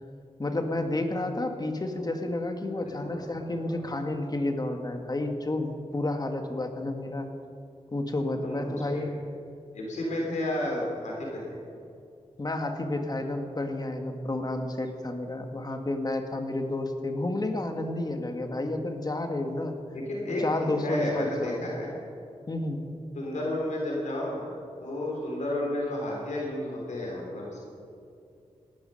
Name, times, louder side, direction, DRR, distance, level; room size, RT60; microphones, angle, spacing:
voice 1, 0.4-7.3 7.9-9.1 12.4-19.8 20.4-21.7 22.5-22.8, left 2 dB, 35° left, 5 dB, 1.8 m, -30 dB
voice 2, 3.0-3.4 8.4-9.0 9.7-11.6 19.9-21.9 23.2-24.5 24.8-27.6, left 1 dB, 90° left, -3 dB, 3.6 m, -32 dB
17.5 x 12.0 x 5.7 m, 2.5 s
wide cardioid pair, 75°, 12 cm